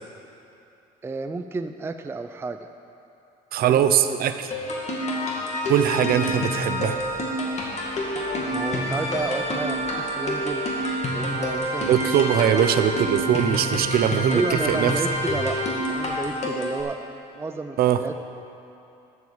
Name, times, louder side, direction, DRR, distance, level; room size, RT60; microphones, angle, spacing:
voice 1, 1.0-2.7 3.6-4.2 8.3-10.6 11.1-12.5 14.3-17.0 17.4-18.2, right 3 dB, 15° right, 7 dB, 0.4 m, -31 dB
voice 2, 3.5-4.5 5.6-7.0 11.9-14.9 17.8-18.0, right 10 dB, 65° right, 10 dB, 0.6 m, -21 dB
sound 1, 4.5-16.8, left 1 dB, 40° left, 2.1 m, -28 dB
Wind instrument woodwind instrument, 5.8-16.3, right 3 dB, 35° right, 2.6 m, -34 dB
12.5 x 6.2 x 7.3 m, 2.7 s
cardioid pair, 110°, 17 cm